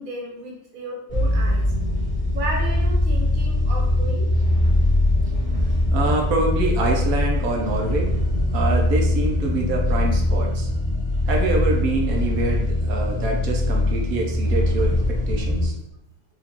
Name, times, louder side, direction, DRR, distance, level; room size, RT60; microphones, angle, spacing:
voice 1, 0.0-1.6 2.3-4.3, right 1 dB, 50° right, -2 dB, 0.6 m, -33 dB
sound 1, 1.1-15.7, left 1 dB, 30° left, 0.8 m, -21 dB
voice 2, 5.9-8.2 8.5-10.7 11.3-15.0 15.3-15.7, right 2 dB, 85° right, 1 dB, 1.2 m, -25 dB
4.9 x 2.5 x 2.9 m, 0.82 s
omnidirectional pair, 1.5 m